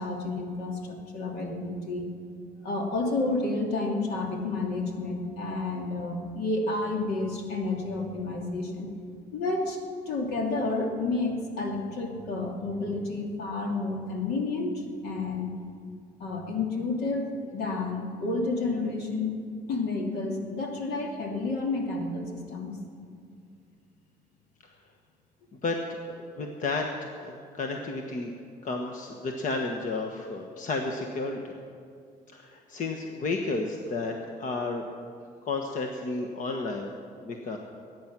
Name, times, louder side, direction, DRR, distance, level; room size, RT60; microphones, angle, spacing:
voice 1, 0.0-2.1 2.6-8.9 9.3-9.8 10.1-15.5 16.2-19.4 19.7-22.8, left 3 dB, 70° left, 1 dB, 2.7 m, -30 dB
voice 2, 26.0-28.3 28.6-31.4 32.3-34.1 34.4-34.8 35.4-36.9 37.2-37.6, left 3 dB, 50° left, 2 dB, 1.3 m, -32 dB
22.0 x 9.6 x 6.1 m, 2.3 s
cardioid pair, 110°, 17 cm